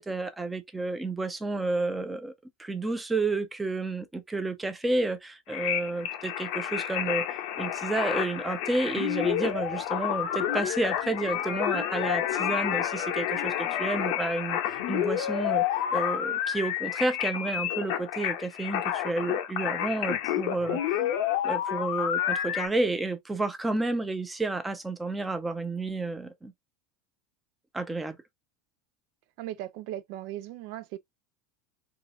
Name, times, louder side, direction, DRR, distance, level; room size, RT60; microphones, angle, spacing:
voice 1, 0.0-2.3 2.6-7.3 7.6-15.6 15.9-20.8 21.4-26.5 27.7-28.2, right 2 dB, 10° right, 0.7 m, -31 dB
sound 1, 5.5-22.7, left 11 dB, 65° left, 0.6 m, -29 dB
voice 2, 29.4-31.0, right 13 dB, 65° right, 0.4 m, -37 dB
3.8 x 2.4 x 2.6 m
hypercardioid pair, 85°, 0 cm